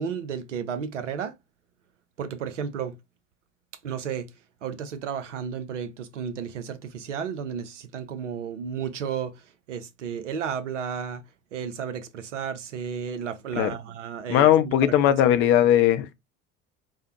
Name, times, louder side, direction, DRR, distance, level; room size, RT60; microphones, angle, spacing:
voice 1, 0.0-1.3 2.2-3.0 3.8-4.3 4.6-11.2 11.5-15.1, right 7 dB, 75° right, 0.6 m, -33 dB
voice 2, 14.3-16.1, left 11 dB, 35° left, 0.4 m, -19 dB
3.5 x 2.0 x 2.9 m
figure-of-eight pair, 65°, 37 cm